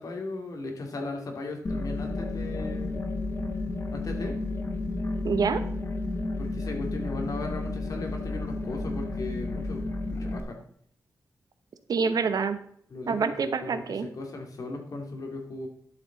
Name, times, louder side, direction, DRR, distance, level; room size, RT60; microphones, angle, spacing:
voice 1, 0.0-3.0 3.9-4.4 6.4-10.6 12.9-15.7, left 2 dB, 60° left, 2 dB, 2.5 m, -37 dB
sound 1, 1.6-10.4, left 2 dB, 40° left, 1.3 m, -32 dB
voice 2, 5.2-5.6 11.9-12.6 13.1-14.1, right 5 dB, 70° right, 10 dB, 0.9 m, -26 dB
11.5 x 7.1 x 4.0 m, 0.65 s
wide cardioid pair, 110°, 7 cm